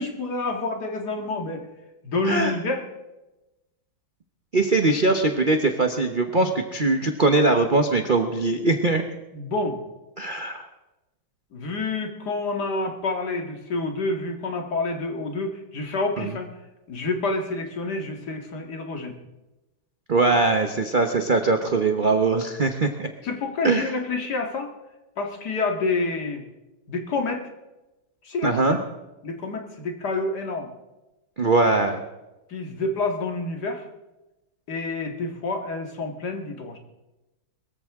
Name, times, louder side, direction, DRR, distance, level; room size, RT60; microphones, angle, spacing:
voice 1, 0.0-1.6 2.0-2.8 6.4-6.5 9.3-9.8 11.5-16.5 16.9-19.2 23.2-24.7 25.2-26.5 26.9-27.5 28.2-28.8 29.2-30.7 32.5-33.9 34.7-36.8, left 3 dB, 55° left, 3 dB, 2.4 m, -28 dB
voice 2, 4.5-9.0 10.2-10.7 16.2-16.3 20.1-23.1 23.6-23.9 28.4-28.8 31.4-32.0, right 3 dB, 40° right, 5 dB, 0.8 m, -21 dB
22.5 x 14.5 x 3.6 m, 1.0 s
omnidirectional pair, 2.1 m